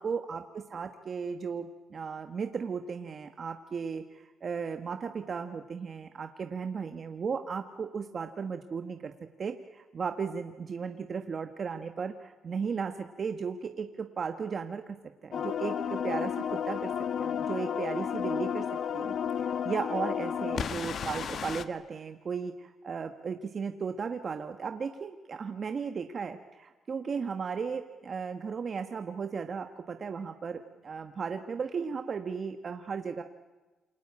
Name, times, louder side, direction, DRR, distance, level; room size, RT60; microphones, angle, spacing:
voice 1, 0.0-9.1 9.4-15.0 15.2-16.9 17.2-18.7 18.9-33.2, right 5 dB, 45° right, 7 dB, 1.4 m, -35 dB
sound 1, 15.3-21.6, left 8 dB, 55° left, 1.3 m, -32 dB
28.0 x 24.0 x 8.7 m, 1.3 s
cardioid pair, 90°, 0 cm